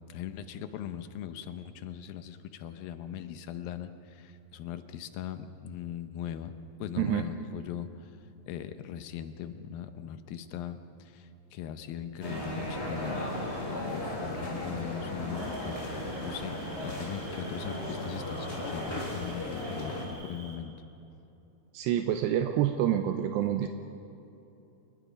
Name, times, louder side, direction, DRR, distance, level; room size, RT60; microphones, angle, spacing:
voice 1, 0.1-6.5 6.8-8.1 8.5-13.3 13.7-16.6 16.8-20.7, left 9 dB, 75° left, 9 dB, 2.3 m, -40 dB
sound 1, 12.2-20.1, left 1 dB, 15° left, 4.4 m, -36 dB
Cricket, 15.3-20.6, right 3 dB, 25° right, 4.0 m, -52 dB
voice 2, 21.7-23.7, right 11 dB, 80° right, 6 dB, 2.9 m, -27 dB
28.5 x 21.5 x 5.2 m, 2.9 s
omnidirectional pair, 4.9 m